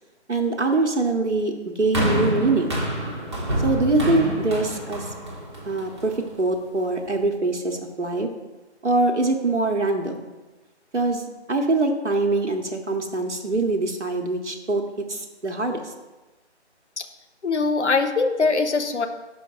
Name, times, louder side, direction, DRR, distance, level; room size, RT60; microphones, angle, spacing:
voice 1, 0.3-2.8 3.6-5.1 5.7-6.1 6.4-8.3 8.8-10.3 10.9-14.8 15.1-15.9, right 2 dB, 90° right, 3 dB, 0.9 m, -23 dB
sound 1, 1.9-6.3 7.1-7.2, right 1 dB, 25° right, 0.9 m, -27 dB
voice 2, 17.4-19.1, left 4 dB, 80° left, 7 dB, 0.8 m, -22 dB
6.1 x 5.2 x 3.7 m, 1.1 s
figure-of-eight pair, 150°, 34 cm